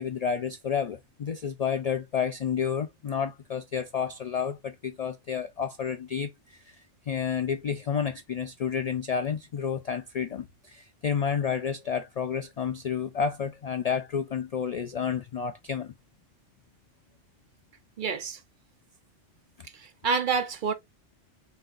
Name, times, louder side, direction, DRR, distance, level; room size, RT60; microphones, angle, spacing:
voice 1, 0.0-6.8 7.1-15.9, left 7 dB, 75° left, 0.3 m, -30 dB
voice 2, 18.0-18.4 19.7-20.7, right 5 dB, 50° right, 0.7 m, -28 dB
4.1 x 3.8 x 2.4 m
omnidirectional pair, 1.2 m